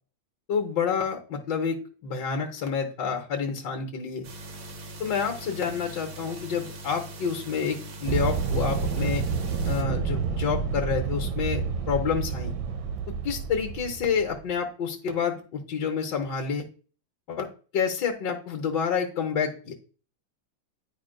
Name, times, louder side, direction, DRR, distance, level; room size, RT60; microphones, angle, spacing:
voice 1, 0.5-4.2 5.0-9.2 9.6-12.5 13.2-16.6 17.3-17.5 17.7-19.7, left 6 dB, 70° left, 2 dB, 1.6 m, -28 dB
sound 1, 4.2-9.8, right 1 dB, 55° right, 1.3 m, -41 dB
sound 2, 8.1-14.5, right 5 dB, 80° right, 1.3 m, -29 dB
10.5 x 5.0 x 2.2 m, 0.38 s
omnidirectional pair, 2.0 m